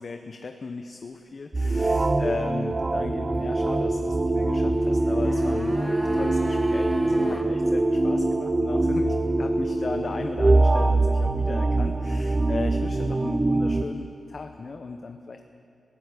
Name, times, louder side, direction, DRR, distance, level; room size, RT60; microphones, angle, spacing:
voice 1, 0.0-15.5, left 4 dB, 45° left, 6 dB, 1.0 m, -36 dB
sound 1, 1.5-13.8, right 2 dB, 25° right, 0.8 m, -23 dB
sound 2, 4.9-7.5 7.8-7.9, equal, 5° right, 1.4 m, -38 dB
21.0 x 16.0 x 8.3 m, 2.6 s
wide cardioid pair, 120°, 0 cm